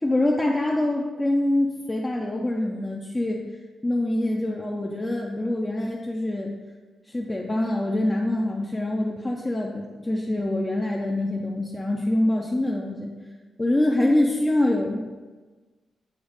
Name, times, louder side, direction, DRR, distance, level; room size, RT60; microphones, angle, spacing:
voice 1, 0.0-3.4 3.8-6.5 7.1-13.1 13.6-15.0, left 1 dB, 15° left, -2 dB, 0.5 m, -25 dB
8.0 x 3.0 x 5.0 m, 1.3 s
wide cardioid pair, 145°, 0 cm